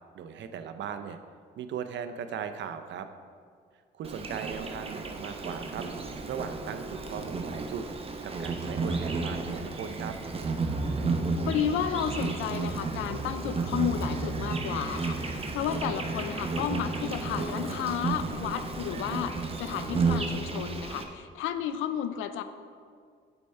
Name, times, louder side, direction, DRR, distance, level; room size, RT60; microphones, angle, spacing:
voice 1, 0.1-1.2 1.6-3.1 3.9-5.9 6.3-7.9 8.2-10.2, right 7 dB, 65° right, 8 dB, 0.6 m, -38 dB
Insect, 4.0-21.0, right 3 dB, 30° right, 0.7 m, -32 dB
voice 2, 11.5-22.4, left 9 dB, 90° left, 11 dB, 0.4 m, -32 dB
6.9 x 4.4 x 5.4 m, 2.1 s
cardioid pair, 90°, 20 cm